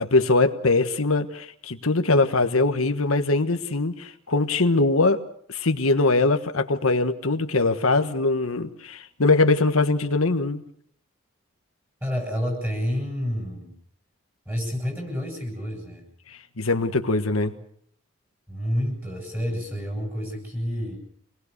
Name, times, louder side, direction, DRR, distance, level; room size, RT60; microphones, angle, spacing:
voice 1, 0.0-5.2 5.5-10.6 16.3-17.5, left 3 dB, 85° left, 7 dB, 1.4 m, -22 dB
voice 2, 12.0-13.7 14.5-16.0 18.5-21.0, equal, 10° right, 2 dB, 7.6 m, -29 dB
26.5 x 20.0 x 6.7 m, 0.63 s
head